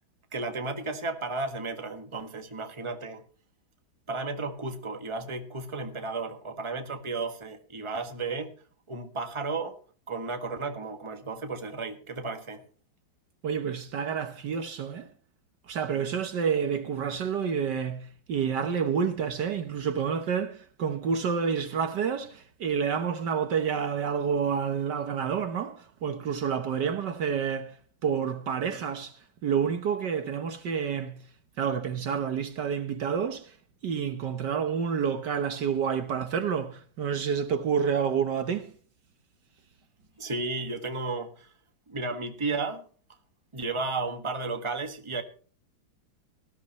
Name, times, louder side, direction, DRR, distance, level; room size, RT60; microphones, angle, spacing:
voice 1, 0.3-3.2 4.1-8.5 8.9-9.8 10.1-12.6 40.2-41.5 41.9-42.8 43.5-45.2, right 3 dB, 15° right, 1.5 m, -33 dB
voice 2, 13.4-15.1 15.7-27.8 28.0-29.1 29.4-31.2 31.6-33.5 33.8-38.7, right 7 dB, 65° right, 1.6 m, -29 dB
19.0 x 13.5 x 3.0 m
omnidirectional pair, 2.2 m